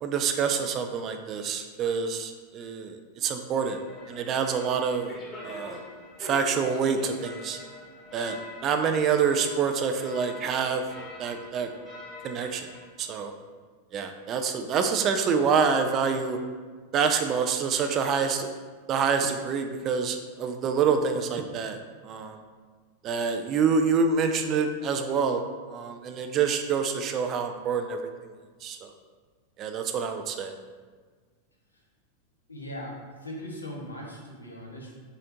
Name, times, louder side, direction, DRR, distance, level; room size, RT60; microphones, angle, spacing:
voice 1, 0.0-3.8 4.1-5.1 5.4-5.8 6.2-7.6 8.1-10.8 11.2-11.7 12.2-12.7 13.0-13.3 13.9-16.4 16.9-18.5 18.9-22.4 23.0-25.4 25.7-28.0 28.6-28.9 29.6-30.5, right 6 dB, 35° right, 6 dB, 0.4 m, -27 dB
sound 1, 3.6-12.8, left 2 dB, 15° left, 1.1 m, -44 dB
voice 2, 32.5-35.0, equal, 80° left, -2 dB, 0.8 m, -39 dB
4.2 x 3.8 x 2.7 m, 1.5 s
figure-of-eight pair, 90°, 0 cm